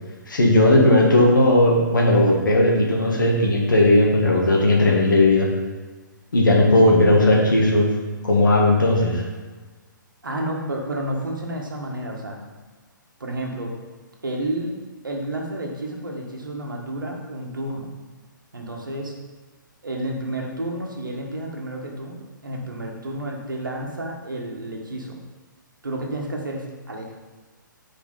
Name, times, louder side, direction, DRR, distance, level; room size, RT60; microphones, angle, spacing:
voice 1, 0.3-5.5 6.3-7.9 8.2-9.2, left 1 dB, 70° left, -1 dB, 1.8 m, -16 dB
voice 2, 10.2-12.4 13.2-13.7 14.2-14.8 15.0-17.9 18.5-19.1 19.8-22.2 22.4-25.2 25.8-27.1, right 1 dB, 75° right, 0 dB, 1.6 m, -30 dB
8.7 x 5.0 x 3.9 m, 1.3 s
figure-of-eight pair, 125°, 11 cm